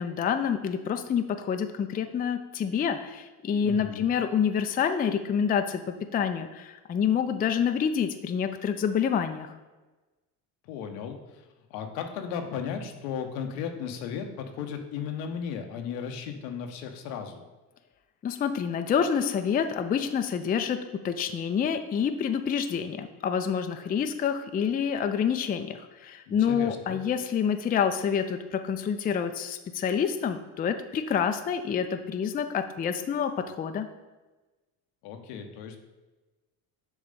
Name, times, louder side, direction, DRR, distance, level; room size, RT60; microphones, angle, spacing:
voice 1, 0.0-9.5 18.2-33.9, left 7 dB, 20° left, 8 dB, 0.4 m, -27 dB
voice 2, 3.6-4.1 10.6-17.5 26.3-27.0 35.0-35.8, left 7 dB, 75° left, 5 dB, 0.9 m, -36 dB
6.9 x 3.1 x 5.2 m, 1.2 s
hypercardioid pair, 75°, 48 cm